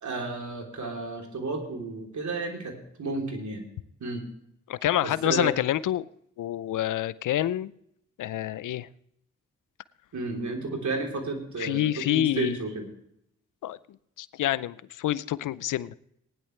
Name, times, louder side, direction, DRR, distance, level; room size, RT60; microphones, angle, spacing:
voice 1, 0.0-3.6 4.0-4.2 5.0-5.5 10.1-12.9, right 3 dB, 65° right, 2 dB, 3.6 m, -32 dB
voice 2, 4.7-6.0 6.4-7.7 8.2-8.9 11.6-12.6 13.6-13.8 14.2-15.9, left 13 dB, 75° left, 18 dB, 0.6 m, -27 dB
19.0 x 10.5 x 3.3 m, 0.73 s
supercardioid pair, 45°, 31 cm